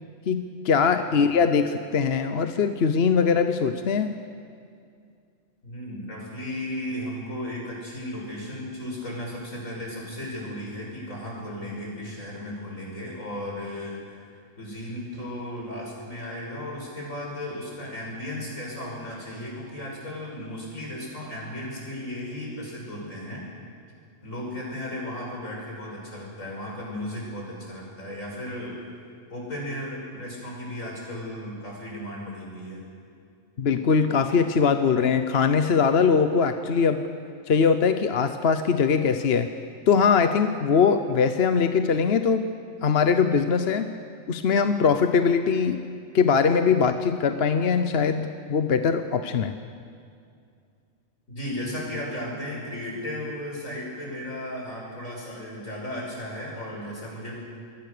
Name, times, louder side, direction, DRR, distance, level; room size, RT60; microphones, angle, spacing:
voice 1, 0.3-4.1 33.6-37.1 37.5-39.5 39.9-42.5 42.8-43.9 44.3-45.8 46.1-49.6, left 6 dB, 55° left, 8 dB, 1.1 m, -21 dB
voice 2, 5.6-14.2 14.6-23.5 24.2-28.7 29.3-32.8 51.3-57.3, left 1 dB, 80° left, -3 dB, 6.9 m, -35 dB
27.0 x 21.5 x 6.8 m, 2.3 s
omnidirectional pair, 1.4 m